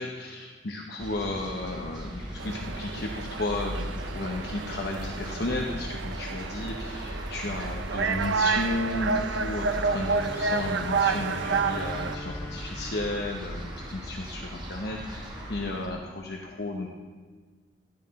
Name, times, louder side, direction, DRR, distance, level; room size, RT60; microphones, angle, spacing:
voice 1, 0.0-16.9, left 2 dB, 60° left, 0 dB, 0.9 m, -33 dB
sound 1, 1.0-15.9, equal, 25° right, 1.7 m, -38 dB
sound 2, 2.4-12.1, right 4 dB, 80° right, 0.5 m, -30 dB
Bowed string instrument, 9.7-14.4, left 2 dB, 15° left, 0.5 m, -44 dB
12.5 x 10.0 x 4.2 m, 1.5 s
head